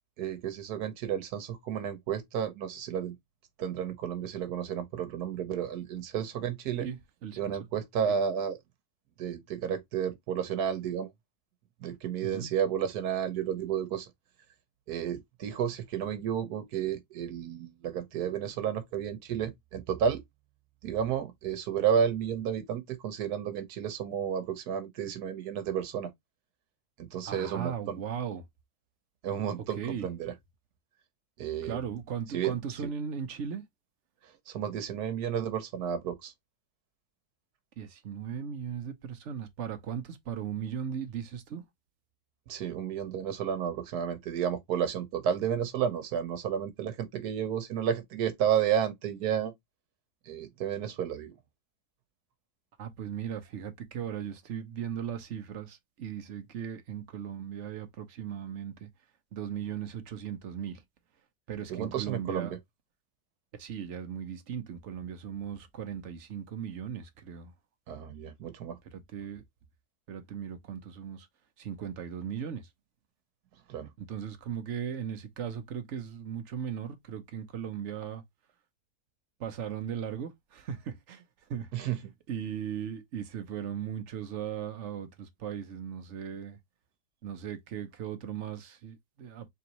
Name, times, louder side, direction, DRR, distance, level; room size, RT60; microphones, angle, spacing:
voice 1, 0.2-3.1 3.6-6.9 7.4-8.6 9.2-11.1 11.8-14.1 14.9-20.2 20.8-26.1 27.0-28.0 29.2-30.3 31.4-31.8 32.3-32.6 34.5-36.3 42.5-49.5 50.3-51.3 61.7-62.6 67.9-68.8 73.7-73.9 81.7-82.0, right 8 dB, 85° right, 1.4 m, -32 dB
voice 2, 6.8-7.6 12.2-12.5 27.3-28.4 29.7-30.1 31.6-33.6 37.8-41.6 52.8-58.9 59.3-60.8 61.5-62.5 63.6-67.5 68.9-69.4 70.1-71.3 71.6-72.7 74.0-78.2 79.4-81.2 81.5-81.9 82.3-86.6 87.2-89.5, right 8 dB, 55° right, 1.0 m, -37 dB
4.0 x 3.5 x 2.9 m
omnidirectional pair, 1.6 m